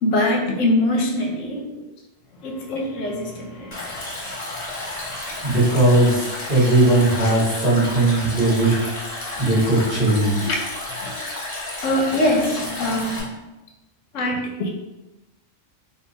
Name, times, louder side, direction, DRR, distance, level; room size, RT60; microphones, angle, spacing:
voice 1, 0.0-1.7 2.4-4.2 4.6-5.0 5.3-5.5 9.4-9.8 10.4-10.6 11.0-11.2 11.8-13.3 14.1-14.7, left 1 dB, 80° left, 0 dB, 1.0 m, -24 dB
Stream, 3.7-13.2, left 2 dB, 35° left, 1.0 m, -32 dB
voice 2, 5.4-8.9 9.4-10.5, right 2 dB, 45° right, -8 dB, 1.4 m, -18 dB
2.9 x 2.3 x 3.8 m, 1.0 s
omnidirectional pair, 1.3 m